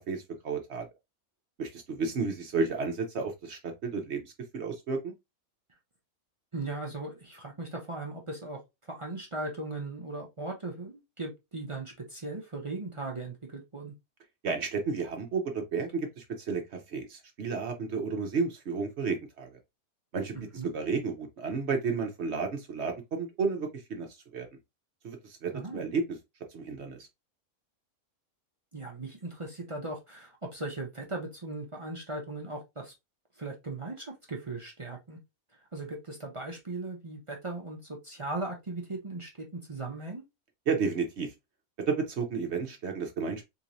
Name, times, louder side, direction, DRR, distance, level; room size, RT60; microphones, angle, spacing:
voice 1, 0.1-0.9 1.6-5.1 14.4-16.6 16.9-19.5 20.1-20.3 20.7-24.1 24.3-24.5 25.0-26.0 26.5-27.1 40.7-41.3 41.9-43.4, right 4 dB, 55° right, 0.9 m, -32 dB
voice 2, 6.5-13.9 20.3-20.7 25.5-25.8 28.7-32.9 33.4-35.2 35.7-40.2, right 2 dB, 35° right, 0.5 m, -38 dB
3.8 x 2.9 x 2.5 m
omnidirectional pair, 1.5 m